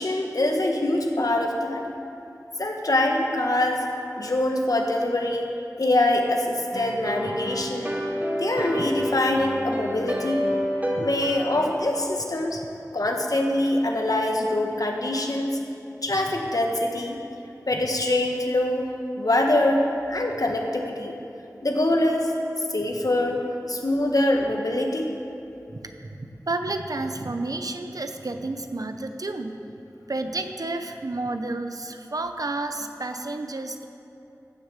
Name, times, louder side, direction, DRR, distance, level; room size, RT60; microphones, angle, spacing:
voice 1, 0.0-1.9 2.6-3.8 4.2-5.5 5.8-7.9 8.3-10.5 11.0-12.6 12.9-15.6 16.0-17.2 17.7-18.9 19.2-19.8 20.1-21.2 21.6-22.3 22.7-23.4 23.7-25.1, left 1 dB, 70° left, 2 dB, 1.3 m, -24 dB
sound 1, 6.7-11.8, equal, 25° right, 1.5 m, -29 dB
voice 2, 25.7-29.6 30.1-33.9, right 2 dB, 70° right, 7 dB, 0.8 m, -31 dB
15.5 x 6.7 x 6.8 m, 2.8 s
wide cardioid pair, 45°, 6 cm